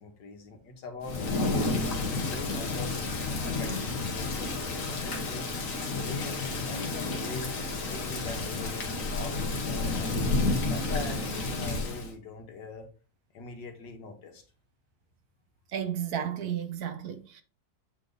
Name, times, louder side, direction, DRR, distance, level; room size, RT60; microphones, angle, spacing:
voice 1, 0.0-1.9 2.3-4.6 4.9-5.5 5.9-7.6 7.8-10.3 10.6-12.9 13.3-14.4, left 3 dB, 80° left, 1.9 m, -42 dB
Thunder / Rain, 1.0-12.1, left 3 dB, 50° left, 1.5 m, -31 dB
voice 2, 15.7-17.4, right 9 dB, 65° right, 1.2 m, -33 dB
8.3 x 3.5 x 3.9 m
omnidirectional pair, 1.9 m